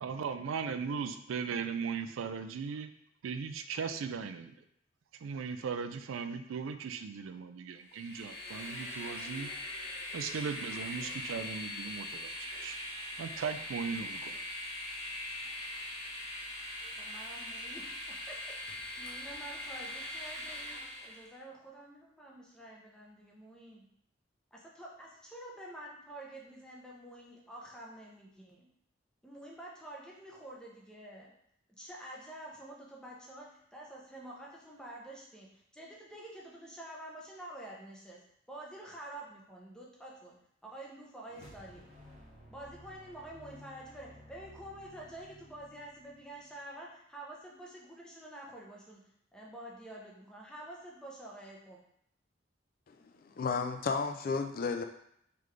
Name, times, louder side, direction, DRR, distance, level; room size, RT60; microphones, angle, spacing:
voice 1, 0.0-2.9 3.2-4.5 5.2-9.5 10.1-12.8 13.2-14.4, right 6 dB, 85° right, 9 dB, 0.4 m, -38 dB
Train, 7.8-21.3, left 1 dB, 85° left, 1.2 m, -41 dB
voice 2, 16.8-23.9 24.5-28.7 29.2-31.3 31.8-38.2 38.5-40.3 40.6-41.9 42.5-51.8, right 1 dB, 5° left, -3 dB, 0.7 m, -48 dB
sound 1, 41.3-46.6, equal, 30° right, 1.0 m, -55 dB
voice 3, 52.9-54.8, left 4 dB, 45° left, 6 dB, 0.3 m, -33 dB
3.8 x 3.3 x 3.2 m, 0.71 s
head